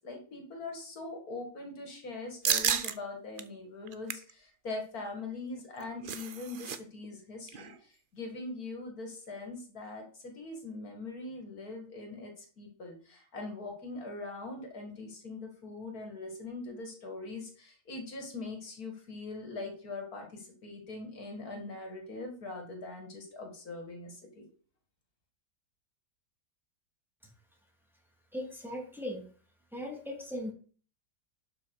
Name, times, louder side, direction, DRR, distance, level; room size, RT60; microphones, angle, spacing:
voice 1, 0.0-24.5, left 3 dB, 70° left, 3 dB, 2.5 m, -42 dB
sound 1, 2.4-2.9 3.4-3.5 3.9-4.3 5.6-6.8 7.0-7.2 7.5-7.8, right 7 dB, 50° right, 0.7 m, -31 dB
voice 2, 28.3-29.2 29.7-30.5, left 1 dB, ahead, -1 dB, 3.0 m, -38 dB
12.0 x 5.9 x 4.7 m, 0.43 s
omnidirectional pair, 1.6 m